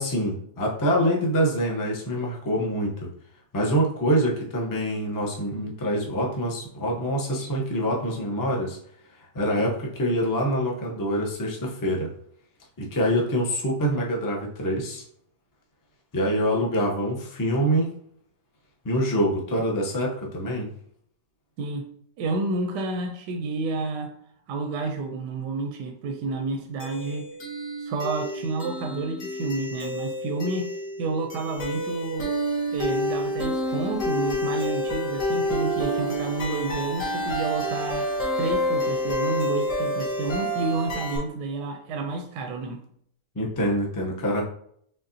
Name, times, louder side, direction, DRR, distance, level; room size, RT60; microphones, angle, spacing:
voice 1, 0.0-3.1 3.5-8.8 9.2-12.1 12.8-15.0 16.1-17.9 18.8-20.7 43.3-44.4, equal, 25° left, -1 dB, 0.4 m, -25 dB
voice 2, 22.2-24.1 24.5-27.3 27.8-30.7 31.0-32.3 32.7-42.8, right 3 dB, 80° right, 3 dB, 1.2 m, -30 dB
sound 1, 26.8-41.2, equal, 50° left, 1.5 m, -28 dB
5.6 x 3.4 x 2.7 m, 0.66 s
omnidirectional pair, 1.9 m